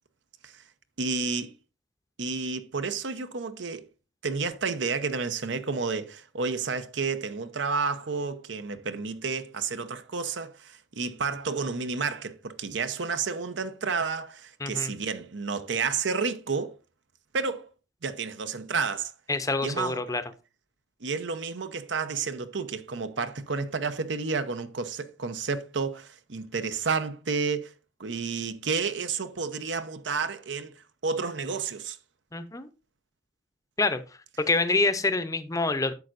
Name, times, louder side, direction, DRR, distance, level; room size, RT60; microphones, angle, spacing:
voice 1, 1.0-1.5 2.2-3.9 4.2-16.8 17.3-17.7 18.0-19.1 19.6-20.0 21.0-27.7 28.0-32.0, right 4 dB, 70° right, 0.8 m, -31 dB
voice 2, 14.6-14.9 19.3-20.2 32.3-32.7 33.8-34.0 34.4-35.9, left 3 dB, 20° left, 0.6 m, -26 dB
10.5 x 7.5 x 2.6 m
head